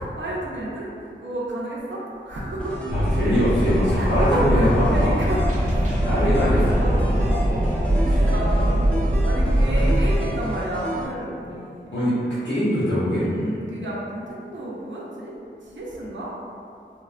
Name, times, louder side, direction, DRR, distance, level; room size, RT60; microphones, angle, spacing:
voice 1, 0.0-2.8 4.0-4.6 4.9-8.8 9.2-11.9 13.1-15.3 15.7-16.3, right 1 dB, 75° right, -5 dB, 0.5 m, -31 dB
sound 1, 2.6-11.1, equal, 5° left, 0.6 m, -33 dB
voice 2, 2.9-5.1 6.0-7.1 8.0-8.3 9.6-10.1 11.5-11.6 11.9-12.1 12.4-13.3, left 1 dB, 70° left, -14 dB, 0.9 m, -23 dB
Wind, 2.9-10.2, right 1 dB, 40° right, 0.7 m, -21 dB
3.0 x 2.1 x 2.4 m, 2.4 s
wide cardioid pair, 45°, 19 cm